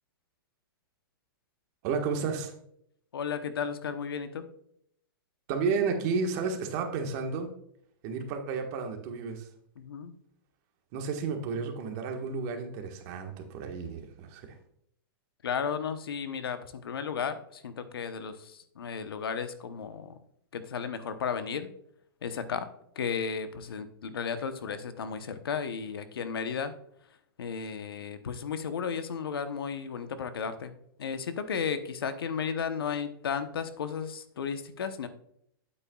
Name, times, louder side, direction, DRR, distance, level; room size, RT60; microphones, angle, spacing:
voice 1, 1.8-2.5 5.5-7.5 8.0-9.5 10.9-14.6, right 5 dB, 40° right, 4 dB, 1.5 m, -32 dB
voice 2, 3.1-4.5 9.8-10.1 15.4-20.1 20.5-21.7 22.2-22.6 23.0-26.7 27.4-30.7 31.0-35.1, left 6 dB, 90° left, 10 dB, 0.9 m, -34 dB
8.8 x 8.3 x 2.3 m, 0.71 s
hypercardioid pair, 145°, 12 cm